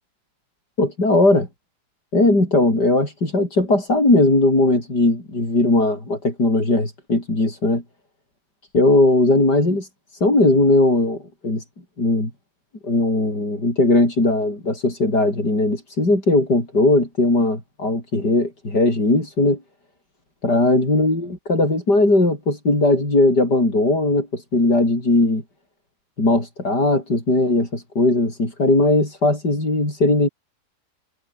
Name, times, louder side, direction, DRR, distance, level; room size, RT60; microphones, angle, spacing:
voice 1, 0.8-1.5 2.1-7.8 8.7-11.6 12.0-12.3 12.8-19.6 20.4-25.4 26.2-30.3, left 2 dB, 90° left, 8.4 m, -18 dB
omnidirectional pair, 1.7 m